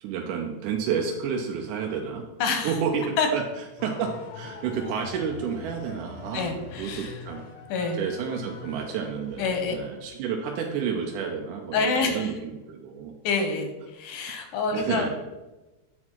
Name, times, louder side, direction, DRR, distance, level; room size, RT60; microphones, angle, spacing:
voice 1, 0.0-2.2 2.6-3.4 3.8-7.4 7.9-13.1 14.7-15.1, right 7 dB, 80° right, 1 dB, 2.1 m, -30 dB
voice 2, 2.4-2.7 3.2-3.3 6.3-7.1 7.7-8.0 9.4-9.7 11.7-12.3 13.2-15.2, left 4 dB, 90° left, 5 dB, 2.5 m, -27 dB
sound 1, 3.8-10.3, left 5 dB, 70° left, 1.5 m, -43 dB
8.5 x 4.3 x 4.4 m, 1.1 s
omnidirectional pair, 3.6 m